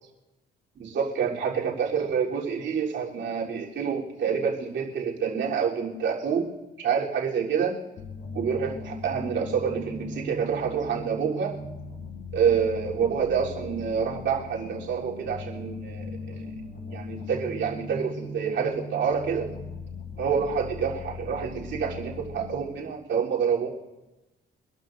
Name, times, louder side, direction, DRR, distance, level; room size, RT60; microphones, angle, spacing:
voice 1, 0.8-6.4 6.8-7.8 8.3-11.6 12.3-16.4 16.9-19.5 20.2-23.7, right 6 dB, 70° right, -4 dB, 3.5 m, -27 dB
sound 1, 8.0-22.6, left 2 dB, 60° left, 2.5 m, -39 dB
25.5 x 12.0 x 2.6 m, 1.0 s
cardioid pair, 90°, 20 cm